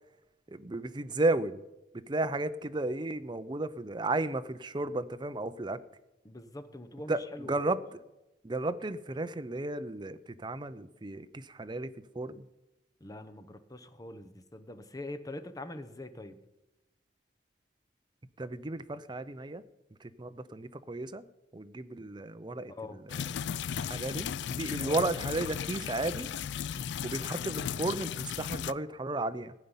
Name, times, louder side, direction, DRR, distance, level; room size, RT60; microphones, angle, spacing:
voice 1, 0.5-1.6 1.9-5.8 7.1-8.0 8.4-12.5 18.4-19.6 20.0-21.3 21.5-23.2 23.9-26.3 27.0-29.5, right 2 dB, 25° right, 12 dB, 0.6 m, -34 dB
voice 2, 6.2-7.6 13.0-16.4 22.7-23.0 24.8-25.0 26.7-26.9, left 2 dB, 20° left, 9 dB, 0.9 m, -44 dB
sound 1, 23.1-28.7, left 8 dB, 75° left, 0.3 m, -36 dB
15.0 x 5.5 x 9.7 m, 0.97 s
head